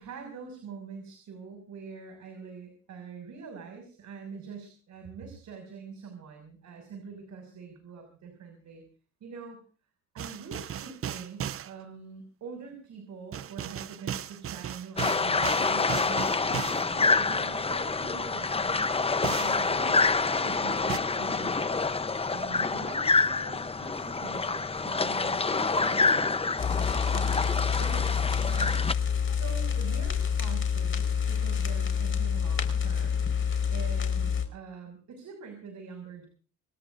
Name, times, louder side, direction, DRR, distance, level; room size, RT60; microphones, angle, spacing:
voice 1, 0.0-8.8 9.2-9.6 10.1-22.0 22.3-26.4 27.1-28.2 28.4-33.3 33.7-36.3, right 5 dB, 70° right, 4 dB, 6.3 m, -44 dB
sound 1, 10.2-11.7 13.3-16.9 19.2-19.6 20.9-21.0, right 9 dB, 50° right, 0.7 m, -36 dB
sound 2, 15.0-28.9, left 4 dB, 20° left, 0.8 m, -27 dB
sound 3, 26.6-34.5, left 7 dB, 45° left, 5.0 m, -28 dB
28.5 x 17.5 x 2.6 m, 0.37 s
cardioid pair, 90°, 30 cm